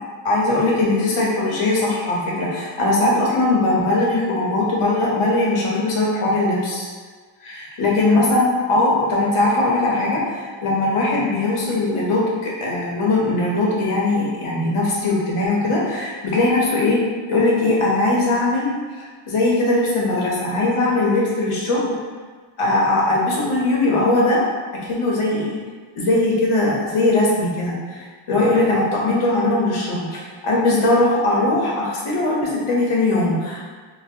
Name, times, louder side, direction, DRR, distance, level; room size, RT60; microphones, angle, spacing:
voice 1, 0.2-6.8 7.4-17.0 17.3-18.7 19.3-22.0 22.6-24.4 24.8-25.6 26.0-28.0 28.3-33.6, left 2 dB, 80° left, -4 dB, 1.0 m, -20 dB
3.8 x 2.2 x 2.8 m, 1.5 s
wide cardioid pair, 170°, 50 cm